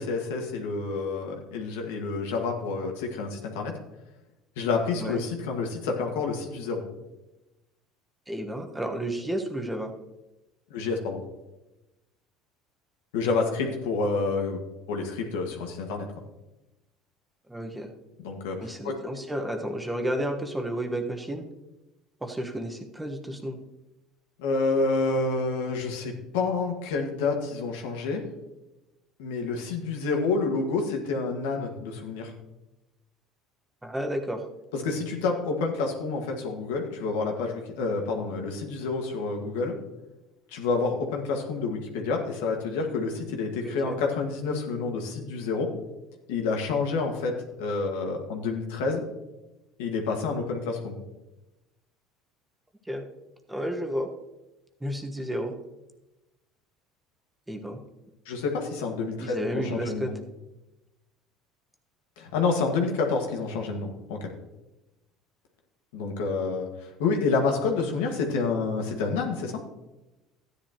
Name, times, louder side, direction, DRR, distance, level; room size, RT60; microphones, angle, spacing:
voice 1, 0.0-3.7 4.6-6.8 10.7-11.2 13.1-14.6 14.9-16.1 18.2-18.6 18.8-19.0 24.4-28.2 29.2-32.3 34.7-39.8 40.5-45.7 46.3-49.0 49.8-51.0 58.3-60.2 62.2-64.3 65.9-69.6, left 4 dB, 90° left, 2 dB, 1.7 m, -28 dB
voice 2, 8.3-9.9 17.5-17.9 18.6-21.4 22.2-23.6 33.8-34.4 43.6-44.0 52.8-53.0 53.5-54.1 54.8-55.5 57.5-57.8 59.2-60.1, right 1 dB, 10° right, 3 dB, 1.3 m, -31 dB
13.0 x 10.0 x 3.0 m, 1.0 s
supercardioid pair, 105°, 0 cm